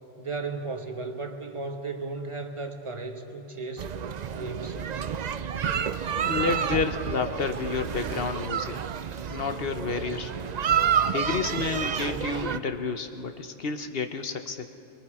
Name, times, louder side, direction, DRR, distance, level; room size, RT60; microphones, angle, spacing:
voice 1, 0.2-3.9 4.3-4.8, right 3 dB, 25° right, 4 dB, 1.2 m, -35 dB
sound 1, 3.8-12.6, right 8 dB, 70° right, 0.4 m, -29 dB
voice 2, 6.2-8.8 9.3-10.3 11.0-14.7, left 5 dB, 50° left, 7 dB, 1.0 m, -30 dB
25.5 x 23.0 x 4.8 m, 2.8 s
omnidirectional pair, 1.4 m